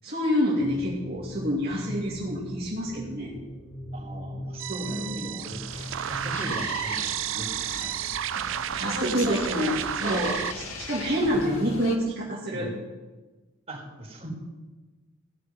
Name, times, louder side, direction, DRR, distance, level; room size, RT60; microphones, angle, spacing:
voice 1, 0.0-3.3 4.7-5.1 8.3-8.5 8.7-12.7, equal, 45° right, -7 dB, 2.6 m, -28 dB
sound 1, 0.6-6.7, equal, 40° left, 4.2 m, -40 dB
voice 2, 3.9-7.9 11.2-11.7 12.5-12.8 13.7-14.3, equal, 30° right, -4 dB, 4.3 m, -38 dB
sound 2, 4.6-10.5, right 10 dB, 65° right, 0.4 m, -32 dB
sound 3, 5.7-12.0, left 2 dB, 85° left, 1.7 m, -37 dB
17.0 x 6.9 x 9.5 m, 1.2 s
head